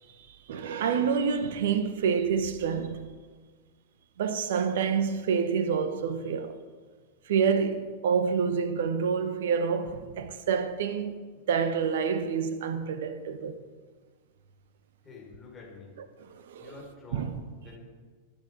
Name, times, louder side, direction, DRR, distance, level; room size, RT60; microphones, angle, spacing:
voice 1, 0.3-3.1 4.2-6.6 7.3-11.2 11.5-13.6 16.2-16.7 17.1-17.4, right 6 dB, 60° right, 1.1 m, -28 dB
voice 2, 15.0-16.0 16.6-17.3 17.6-17.8, left 3 dB, 15° left, 5.0 m, -47 dB
23.5 x 10.5 x 3.8 m
figure-of-eight pair, 90°, 0 cm